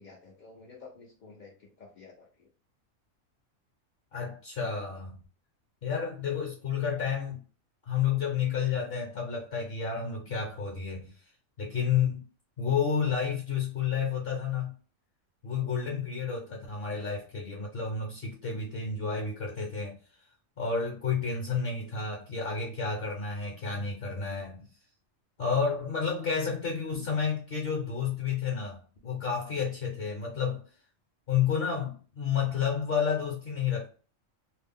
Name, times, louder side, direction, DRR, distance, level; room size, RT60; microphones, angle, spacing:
voice 1, 0.0-2.5, left 4 dB, 80° left, 0.4 m, -51 dB
voice 2, 4.1-5.2 5.8-7.4 7.8-11.1 11.6-12.2 12.6-14.7 15.4-20.0 20.6-24.6 25.4-30.6 31.3-33.9, left 6 dB, 55° left, 0.7 m, -30 dB
2.5 x 2.0 x 3.4 m
omnidirectional pair, 1.4 m